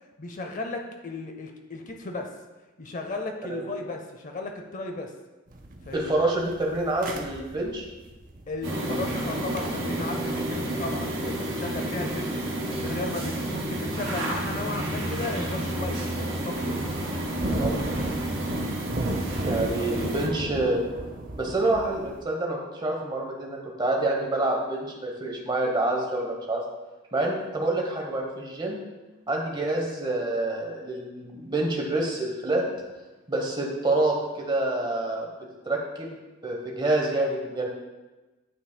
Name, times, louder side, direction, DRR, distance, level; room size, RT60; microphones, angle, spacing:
voice 1, 0.2-2.3 2.8-5.1 5.9-6.1 8.5-12.4 12.8-16.8 18.4-18.8 19.2-20.2 29.5-29.7, left 3 dB, 40° left, 4 dB, 0.5 m, -35 dB
sound 1, 5.5-13.5 13.8-13.9 14.5-14.8 15.2-15.6 16.0-16.1 16.4-22.2, right 1 dB, 40° right, 0.6 m, -35 dB
voice 2, 5.9-7.8 17.6-17.8 19.4-20.8 21.4-26.6 27.1-28.8 29.3-32.6 33.3-35.3 35.6-36.1 36.4-37.7, right 2 dB, 20° right, 0 dB, 1.0 m, -27 dB
sound 2, 8.6-20.3, right 1 dB, 65° right, 2.1 m, -30 dB
9.6 x 5.7 x 2.2 m, 1.1 s
head